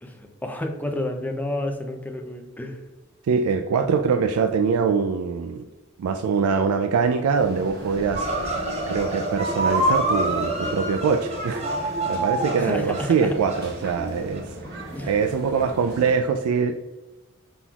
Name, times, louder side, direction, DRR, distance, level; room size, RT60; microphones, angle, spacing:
voice 1, 0.0-2.8 12.6-13.4 14.9-15.1, left 1 dB, 10° left, 4 dB, 0.4 m, -30 dB
voice 2, 3.2-5.7 6.0-8.5 8.9-14.5 15.1-16.8, right 5 dB, 85° right, 6 dB, 0.3 m, -23 dB
sound 1, 7.3-16.1, equal, 50° right, 1.0 m, -38 dB
sound 2, 8.1-14.4, right 1 dB, 30° right, 0.7 m, -27 dB
5.9 x 3.8 x 2.3 m, 1.1 s
head